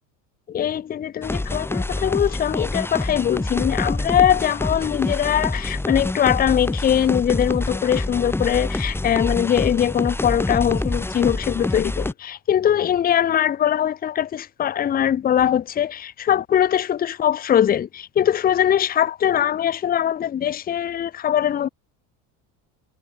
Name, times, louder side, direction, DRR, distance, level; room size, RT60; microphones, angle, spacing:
voice 1, 0.5-21.7, left 10 dB, 20° left, 0.7 m, -21 dB
sound 1, 1.2-12.1, left 2 dB, 5° left, 1.6 m, -26 dB
cardioid pair, 130°, 39 cm